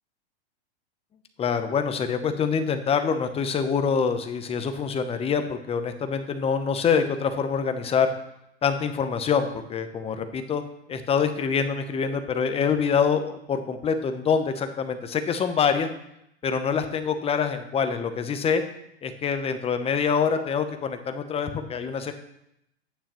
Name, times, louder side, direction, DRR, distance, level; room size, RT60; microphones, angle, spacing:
voice 1, 1.4-8.1 8.6-10.6 10.9-15.9 16.4-18.6 19.0-22.1, left 6 dB, 20° left, 8 dB, 0.8 m, -25 dB
10.0 x 9.1 x 3.0 m, 0.79 s
hypercardioid pair, 120°, 32 cm